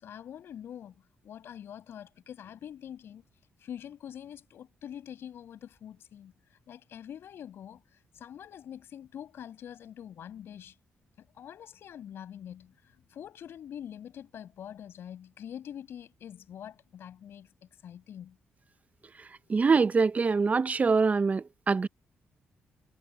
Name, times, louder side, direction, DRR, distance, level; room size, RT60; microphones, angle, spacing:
voice 1, 0.0-3.2 3.6-6.3 6.7-7.8 8.2-10.7 11.2-12.7 13.1-17.5 17.8-18.4 19.5-19.6, left 9 dB, 75° left, 7.1 m, -45 dB
voice 2, 19.5-21.9, right 4 dB, 35° right, 0.6 m, -24 dB
cardioid pair, 65°, 4 cm